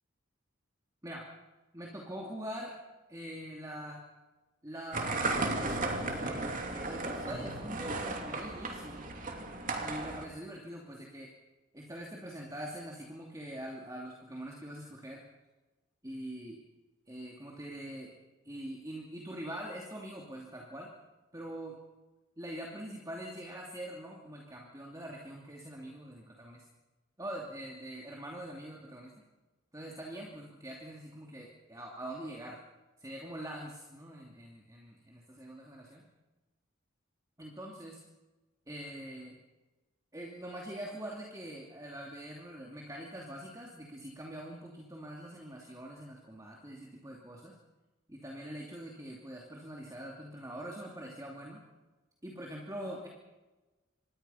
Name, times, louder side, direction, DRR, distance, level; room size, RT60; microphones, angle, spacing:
voice 1, 1.7-2.8 3.1-4.0 4.6-9.1 9.8-11.3 11.7-15.2 16.0-16.6 17.1-18.1 18.4-20.9 21.3-21.8 22.4-26.6 27.2-29.2 29.7-32.6 33.0-36.0 37.4-38.1 38.7-39.4 40.1-47.6 48.1-51.7 52.2-53.1, right 1 dB, 15° right, -1 dB, 2.8 m, -44 dB
sound 1, 4.9-10.3, right 2 dB, 40° right, 2.9 m, -35 dB
26.5 x 20.5 x 5.7 m, 1.1 s
head